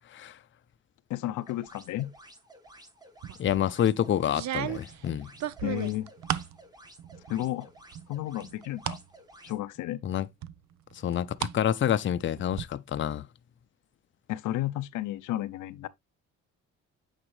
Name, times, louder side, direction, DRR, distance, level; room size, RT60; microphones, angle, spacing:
voice 1, 1.1-2.1 5.6-6.1 7.3-7.7 8.1-9.0 9.4-10.0 14.3-15.9, left 14 dB, 85° left, 0.6 m, -32 dB
sound 1, 1.4-9.6, right 1 dB, 15° right, 1.4 m, -54 dB
sound 2, 3.2-3.7 4.3-6.6 7.0-7.6 7.9-9.0 9.5-9.6 10.4-11.6 11.9-12.6, right 11 dB, 65° right, 0.7 m, -35 dB
voice 2, 3.4-5.3 10.0-10.3 10.9-13.3, left 10 dB, 40° left, 0.5 m, -28 dB
8.8 x 4.4 x 3.1 m
cardioid pair, 90°, 30 cm